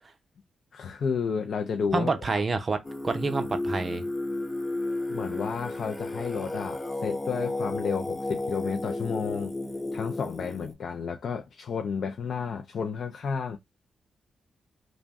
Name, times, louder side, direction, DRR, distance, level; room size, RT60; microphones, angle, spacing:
voice 1, 0.7-2.1 5.1-9.5 9.9-13.6, left 6 dB, 65° left, 0.3 m, -31 dB
voice 2, 1.9-4.1, right 3 dB, 40° right, 0.5 m, -28 dB
Singing, 2.8-10.7, left 2 dB, 25° left, 0.6 m, -33 dB
2.5 x 2.1 x 3.4 m
cardioid pair, 80°, 0 cm